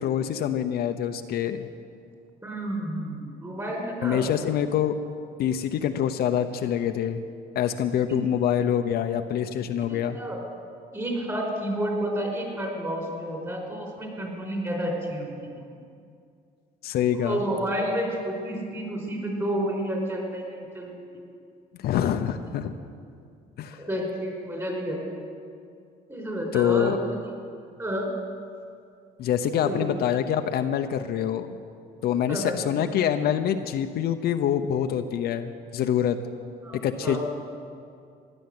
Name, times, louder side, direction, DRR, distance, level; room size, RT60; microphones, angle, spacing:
voice 1, 0.0-1.7 4.0-4.9 5.4-7.2 7.5-10.2 16.8-17.4 21.8-22.7 23.6-23.8 26.5-27.0 29.2-31.5 32.0-36.2 36.8-37.2, left 9 dB, 70° left, 7 dB, 0.8 m, -25 dB
voice 2, 2.4-4.2 8.1-8.2 9.8-10.4 10.9-15.6 17.1-21.2 23.8-25.0 26.1-27.2 27.8-28.1 29.6-29.9 32.3-32.6 36.6-37.2, right 1 dB, 15° right, 0 dB, 4.8 m, -30 dB
16.0 x 11.0 x 7.9 m, 2.3 s
cardioid pair, 110°, 17 cm